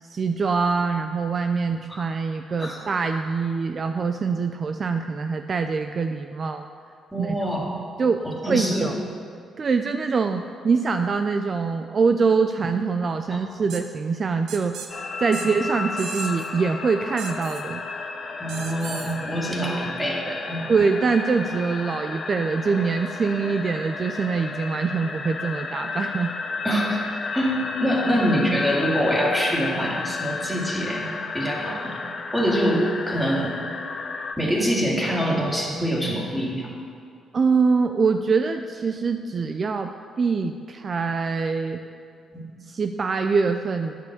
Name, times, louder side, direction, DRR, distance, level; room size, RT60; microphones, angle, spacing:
voice 1, 0.0-6.7 7.2-7.4 8.0-8.2 8.5-8.9 9.6-14.8 15.2-17.8 20.7-26.3 37.3-41.8 42.7-44.0, right 5 dB, 40° right, 7 dB, 0.4 m, -24 dB
voice 2, 7.1-7.7 8.2-8.9 13.3-13.4 18.4-20.7 26.6-27.0 27.3-31.1 31.3-32.0 32.3-33.6 34.4-36.7 42.3-42.4, equal, 5° right, -3 dB, 2.4 m, -25 dB
sound 1, 13.7-13.8 14.5-14.9 15.3-15.5 16.0-16.5 17.2-17.6 18.5-19.1, right 7 dB, 80° right, 0.9 m, -37 dB
sound 2, 14.9-34.3, left 4 dB, 45° left, 0.8 m, -33 dB
9.5 x 7.4 x 6.7 m, 2.3 s
cardioid pair, 90°, 0 cm